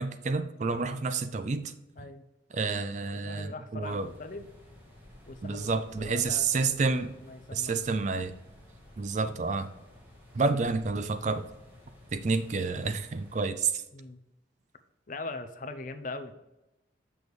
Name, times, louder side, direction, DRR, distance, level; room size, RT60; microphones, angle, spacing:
voice 1, 0.0-1.7 2.5-4.1 5.4-7.1 7.5-8.3 9.0-9.7 10.3-11.4 12.1-13.8, right 4 dB, 40° right, 0.4 m, -29 dB
voice 2, 0.8-1.3 2.0-2.2 3.1-4.4 5.3-6.8 7.2-7.9 10.3-10.6 13.9-14.2 15.1-16.3, left 2 dB, 45° left, 0.5 m, -41 dB
sound 1, 3.8-13.4, left 1 dB, 10° right, 1.6 m, -53 dB
6.9 x 6.2 x 3.1 m
head